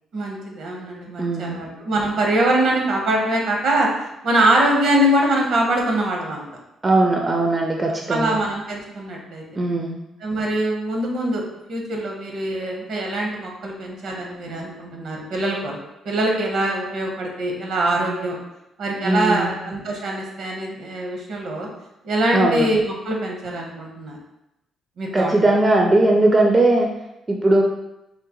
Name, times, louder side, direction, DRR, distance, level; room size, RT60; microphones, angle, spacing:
voice 1, 0.1-3.9 4.2-6.5 8.1-9.4 10.2-11.4 11.7-15.8 16.0-18.4 18.8-21.7 22.0-24.2 25.0-25.5, right 1 dB, 70° right, 0 dB, 0.8 m, -23 dB
voice 2, 1.2-1.6 6.8-8.4 9.6-10.0 19.0-19.6 22.3-22.7 25.1-26.9 27.3-27.6, right 2 dB, 30° right, 1 dB, 0.4 m, -19 dB
3.6 x 2.1 x 2.9 m, 0.88 s
cardioid pair, 90°, 0 cm